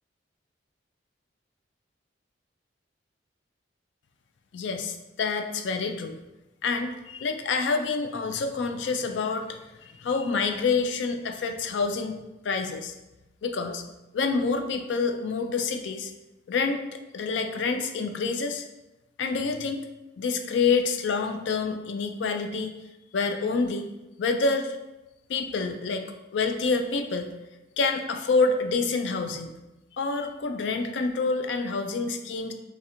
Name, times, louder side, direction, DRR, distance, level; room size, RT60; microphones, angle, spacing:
voice 1, 4.5-6.2 6.6-12.2 12.4-12.9 13.4-13.8 14.1-16.1 16.5-18.7 19.2-19.9 20.2-22.7 23.1-23.9 24.2-24.8 25.3-27.3 27.8-29.5 30.0-32.5, left 4 dB, 75° left, 6 dB, 0.4 m, -27 dB
3.2 x 2.5 x 4.3 m, 1.0 s
head